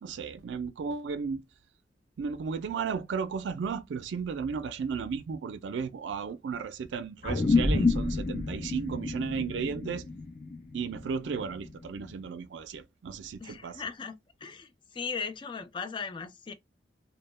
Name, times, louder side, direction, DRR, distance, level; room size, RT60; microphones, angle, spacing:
voice 1, 0.0-1.4 2.2-10.1 10.7-13.8, right 5 dB, 80° right, 0.4 m, -34 dB
sound 1, 7.2-12.0, left 3 dB, 45° left, 0.7 m, -29 dB
voice 2, 13.4-16.5, left 5 dB, 25° left, 0.3 m, -38 dB
2.1 x 2.1 x 3.1 m
head